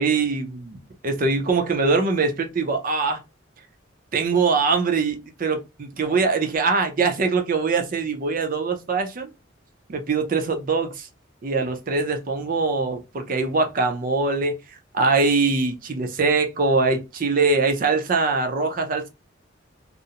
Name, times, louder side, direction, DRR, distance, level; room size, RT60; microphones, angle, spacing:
voice 1, 0.0-3.2 4.1-9.3 9.9-11.1 11.4-14.5 14.9-19.1, right 4 dB, 45° right, 0.5 m, -22 dB
2.5 x 2.0 x 2.7 m
head